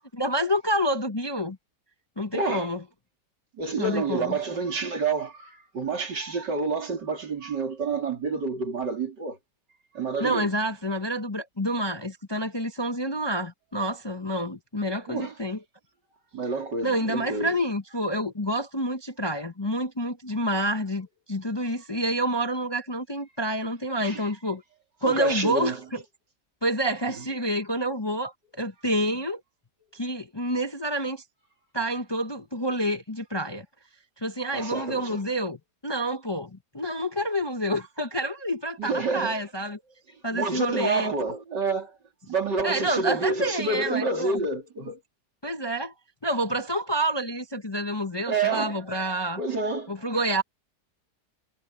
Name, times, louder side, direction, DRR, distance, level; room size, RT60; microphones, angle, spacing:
voice 1, 0.2-1.6 2.2-2.8 3.8-4.4 10.2-15.6 16.8-24.6 25.0-26.0 26.6-29.4 29.9-31.2 31.7-33.6 34.2-39.8 40.2-41.1 42.6-44.4 45.4-45.9 46.2-49.4 49.9-50.4, equal, 20° left, 0.8 m, -28 dB
voice 2, 2.3-2.7 3.6-9.4 9.9-10.5 15.1-15.3 16.3-17.5 24.0-24.2 25.0-25.8 27.2-27.3 34.5-35.2 38.8-39.4 40.3-42.0 42.3-45.0 48.3-48.8 49.4-49.9, right 4 dB, 80° right, 4.0 m, -28 dB
omnidirectional pair, 1.8 m